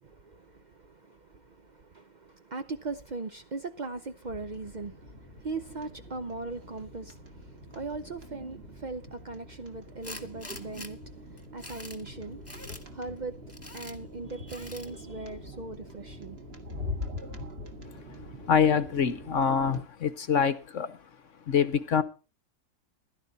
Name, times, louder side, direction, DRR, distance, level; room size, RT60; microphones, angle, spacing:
voice 1, 0.0-16.4 18.3-18.4, right 3 dB, 75° right, 0.4 m, -40 dB
sound 1, 4.2-19.8, left 2 dB, 35° right, 2.2 m, -43 dB
Tools, 10.0-10.9 11.4-12.0 12.5-12.8 13.5-14.0 14.5-14.9, left 1 dB, 10° left, 1.5 m, -44 dB
voice 2, 18.4-21.0 21.5-22.0, left 7 dB, 50° left, 1.1 m, -25 dB
15.5 x 12.5 x 4.1 m
omnidirectional pair, 1.9 m